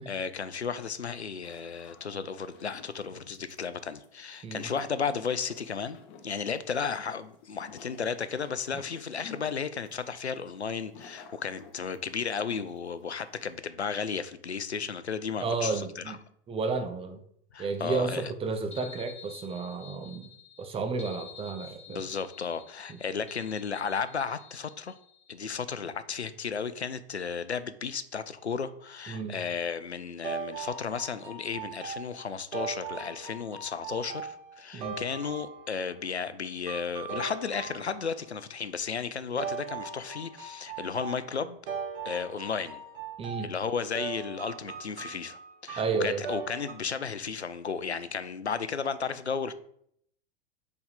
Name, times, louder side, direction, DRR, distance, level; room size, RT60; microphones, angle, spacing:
voice 1, 0.1-16.2 17.5-18.2 21.9-25.0 25.3-41.6 42.0-42.8 43.4-49.5, left 6 dB, 90° left, 13 dB, 0.5 m, -34 dB
sound 1, 1.4-13.6, left 6 dB, 45° left, 0.9 m, -53 dB
voice 2, 15.4-16.2 16.5-17.2 17.6-20.3 20.6-22.0 22.9-23.0 29.1-29.4 34.7-35.0 43.2-43.5 45.8-46.2, right 4 dB, 15° right, 7 dB, 0.8 m, -32 dB
sound 2, 18.7-25.4, left 7 dB, 20° left, 1.4 m, -50 dB
sound 3, 30.2-36.0 36.7-38.3 39.4-46.7, right 6 dB, 55° right, 1.4 m, -39 dB
4.7 x 4.6 x 5.1 m, 0.68 s
figure-of-eight pair, 90°, 32 cm